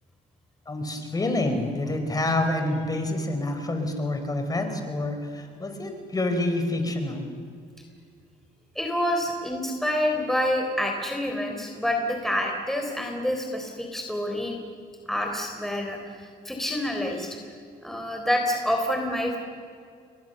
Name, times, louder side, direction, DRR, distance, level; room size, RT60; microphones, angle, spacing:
voice 1, 0.7-7.3, left 2 dB, 20° left, 6 dB, 4.6 m, -27 dB
voice 2, 8.8-14.6 15.1-17.4 17.8-19.4, left 1 dB, ahead, 2 dB, 3.8 m, -27 dB
30.0 x 23.5 x 7.0 m, 2.2 s
cardioid pair, 110°, 17 cm